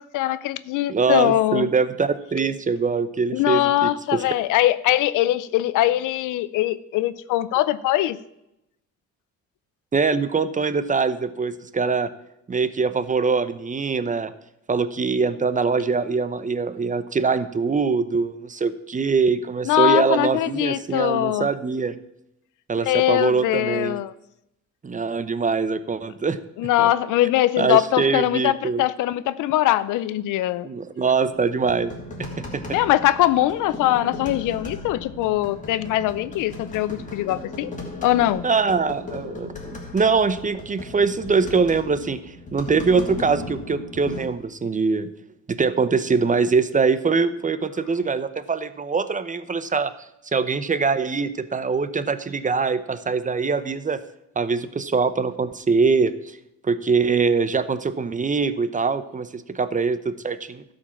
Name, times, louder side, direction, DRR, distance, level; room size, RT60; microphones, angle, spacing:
voice 1, 0.0-1.7 3.3-8.2 19.6-21.5 22.9-24.1 26.6-30.7 32.7-37.7 38.0-38.4, left 14 dB, 90° left, 16 dB, 0.6 m, -22 dB
voice 2, 0.9-4.2 9.9-12.1 12.5-14.3 14.7-22.0 22.7-24.0 24.8-26.4 26.8-26.9 27.6-28.8 30.6-31.9 32.2-32.6 38.4-45.1 45.5-49.9 50.3-54.0 54.4-56.4 56.6-60.6, right 4 dB, 25° right, 13 dB, 0.7 m, -23 dB
sound 1, 31.2-44.3, left 2 dB, 25° left, 2.7 m, -37 dB
12.5 x 5.2 x 7.2 m, 0.84 s
cardioid pair, 90°, 30 cm